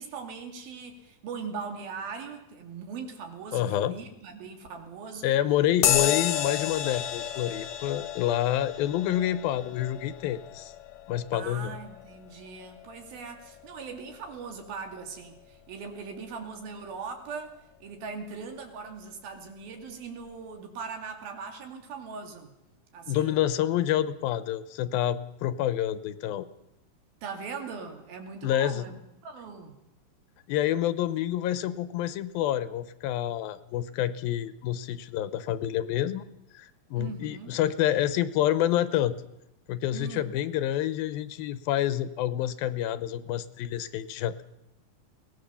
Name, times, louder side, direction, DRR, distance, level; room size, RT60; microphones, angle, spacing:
voice 1, 0.0-5.3 5.8-6.0 11.3-22.5 22.9-23.4 27.2-29.8 37.0-37.6 39.9-40.3, right 5 dB, 85° right, 4 dB, 4.4 m, -40 dB
voice 2, 3.5-4.0 5.2-10.7 11.1-11.8 23.1-26.5 28.4-28.9 30.5-36.2 36.5-39.2 39.7-44.4, left 12 dB, 85° left, 14 dB, 2.7 m, -28 dB
sound 1, 5.8-13.7, left 11 dB, 65° left, 2.0 m, -32 dB
22.5 x 18.5 x 7.0 m, 0.87 s
omnidirectional pair, 4.1 m